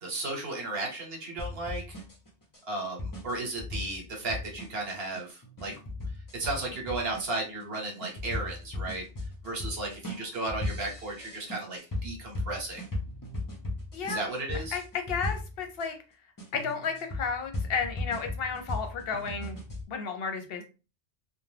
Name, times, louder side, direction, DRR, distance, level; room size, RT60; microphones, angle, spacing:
voice 1, 0.0-2.0 2.7-5.7 6.3-9.1 9.4-12.8 14.0-14.8, right 2 dB, 60° right, 0 dB, 1.1 m, -34 dB
sound 1, 1.4-15.9 16.4-19.8, left 2 dB, 25° left, 0.4 m, -37 dB
voice 2, 13.9-14.2 14.7-14.8 15.1-15.9 16.5-19.6 19.9-20.6, left 5 dB, 60° left, 6 dB, 0.8 m, -32 dB
2.4 x 2.2 x 3.2 m, 0.31 s
omnidirectional pair, 1.2 m